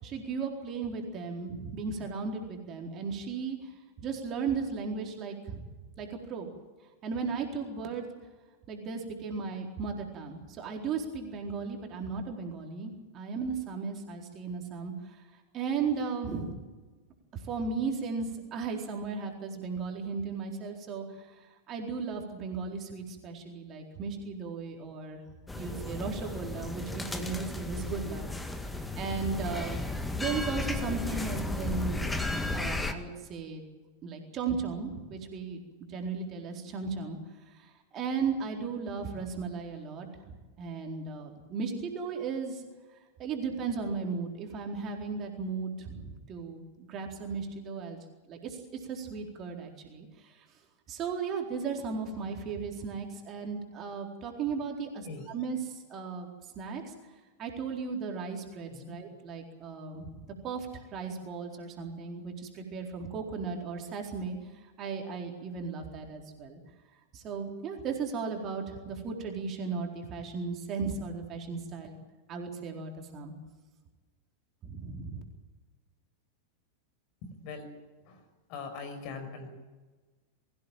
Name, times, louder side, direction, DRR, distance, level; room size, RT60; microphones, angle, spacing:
voice 1, 0.0-3.7 4.0-5.6 6.0-6.5 7.0-8.0 8.7-15.2 15.5-16.5 17.3-25.2 25.6-28.3 28.7-29.8 30.2-32.0 32.5-33.6 34.0-35.6 35.9-37.2 37.5-42.6 43.2-48.0 48.3-50.5 50.9-56.3 56.6-56.9 57.4-66.6 67.1-72.0 72.3-73.4 74.6-75.2, right 5 dB, 30° right, 2 dB, 4.2 m, -36 dB
sound 1, 25.5-32.9, left 2 dB, 5° left, 1.9 m, -34 dB
voice 2, 55.0-55.4 58.7-59.0 77.2-77.7 78.0-79.5, left 4 dB, 45° left, 7 dB, 5.4 m, -42 dB
23.0 x 16.5 x 9.1 m, 1.3 s
figure-of-eight pair, 90°, 0 cm